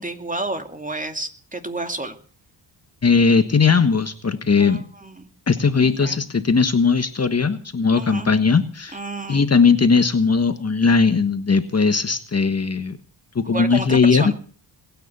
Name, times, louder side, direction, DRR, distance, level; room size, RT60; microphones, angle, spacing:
voice 1, 0.0-2.2 4.6-5.3 5.7-6.2 7.9-8.3 8.9-9.5 13.4-14.3, right 2 dB, 15° right, 7 dB, 2.5 m, -30 dB
voice 2, 3.0-4.8 5.5-9.0 9.3-13.0 13.3-14.3, left 5 dB, 35° left, 9 dB, 1.4 m, -18 dB
21.0 x 9.5 x 6.9 m, 0.43 s
cardioid pair, 85°, 45 cm